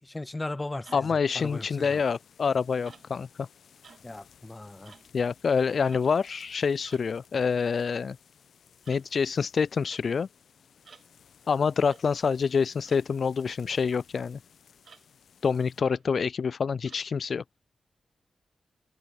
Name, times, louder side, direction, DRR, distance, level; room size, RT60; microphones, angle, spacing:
voice 1, 0.0-2.0 4.0-4.9, left 2 dB, 20° left, 2.9 m, -37 dB
sound 1, 0.8-1.2 1.8-2.3 2.8-3.2 3.8-4.1 4.8-5.1 5.8-6.1 6.8-7.1 7.8-8.1 8.8-9.1 9.8-10.1 10.8-11.1 11.8-12.1 12.8-13.1 13.8-14.1 14.8-15.1 15.8-16.1 16.8-17.1, right 5 dB, 55° right, 3.3 m, -54 dB
voice 2, 0.9-3.5 5.1-8.2 8.9-10.3 11.5-14.4 15.4-17.4, left 5 dB, 55° left, 0.4 m, -27 dB
sound 2, 1.3-15.8, left 7 dB, 80° left, 5.1 m, -58 dB
wide cardioid pair, 120°, 0 cm